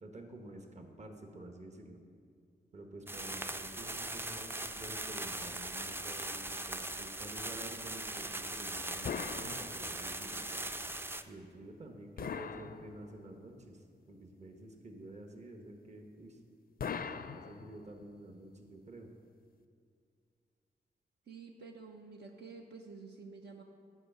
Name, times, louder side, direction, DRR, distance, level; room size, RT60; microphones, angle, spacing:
voice 1, 0.0-2.0 2.7-10.7 11.3-16.4 17.3-19.1, right 1 dB, 40° right, 4 dB, 1.0 m, -50 dB
sound 1, 3.1-11.2, right 2 dB, 15° right, 0.4 m, -40 dB
sound 2, 9.0-10.2 12.2-13.4 16.8-18.1, left 6 dB, 55° left, 0.4 m, -41 dB
voice 2, 21.3-23.6, right 4 dB, 70° right, 1 dB, 0.8 m, -50 dB
9.7 x 4.9 x 6.6 m, 2.2 s
cardioid pair, 75°, 18 cm